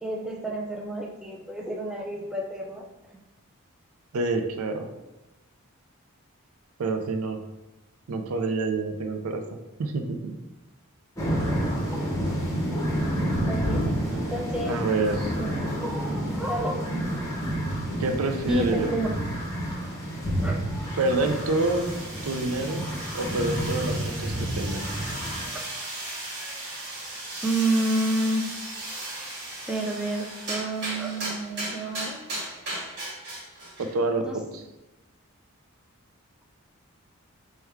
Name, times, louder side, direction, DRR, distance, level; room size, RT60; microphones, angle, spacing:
voice 1, 0.0-2.9 11.5-12.2 13.5-13.9 14.3-14.8 15.4-17.2 17.4-17.6 18.4-19.1 20.4-20.7 25.5-25.7 27.4-28.5 29.7-32.3 34.2-34.4, right 1 dB, 5° right, 0 dB, 0.3 m, -30 dB
voice 2, 4.1-4.9 6.8-7.4 8.1-10.4 14.6-15.4 18.0-18.9 21.0-21.9 22.2-22.8 23.1-24.8 33.8-34.2 34.5-34.6, right 3 dB, 75° right, 6 dB, 0.4 m, -27 dB
sound 1, 11.2-25.5, equal, 15° left, 0.7 m, -29 dB
sound 2, 20.8-34.0, right 2 dB, 50° right, 1.4 m, -36 dB
4.4 x 2.2 x 3.4 m, 1.0 s
head